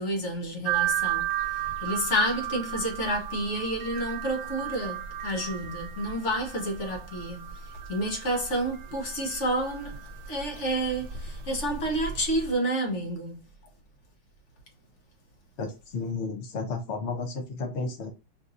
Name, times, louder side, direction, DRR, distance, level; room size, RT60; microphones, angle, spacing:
voice 1, 0.0-13.4, right 1 dB, 45° left, 1.0 m, -30 dB
sound 1, 0.6-12.5, right 10 dB, 70° right, 1.1 m, -34 dB
voice 2, 15.6-18.1, left 4 dB, 70° left, 0.6 m, -32 dB
5.6 x 2.6 x 2.6 m
omnidirectional pair, 2.2 m